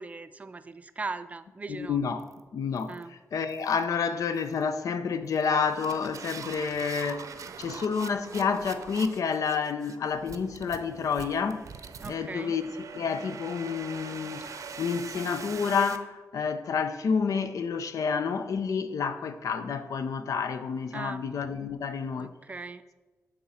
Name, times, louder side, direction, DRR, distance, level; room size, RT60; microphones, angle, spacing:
voice 1, 0.0-2.0 2.9-3.2 12.0-12.6 20.9-21.3 22.2-22.8, right 3 dB, 25° right, 0.4 m, -39 dB
voice 2, 1.7-2.3 2.5-3.0 3.3-11.7 12.1-12.6 12.9-22.3, left 6 dB, 80° left, 0.6 m, -29 dB
sound 1, 2.2-2.4 2.8-3.0 3.5-3.8 4.4-4.6 5.2-16.0, right 6 dB, 75° right, 0.6 m, -43 dB
9.6 x 3.8 x 7.1 m
wide cardioid pair, 155°, 6 cm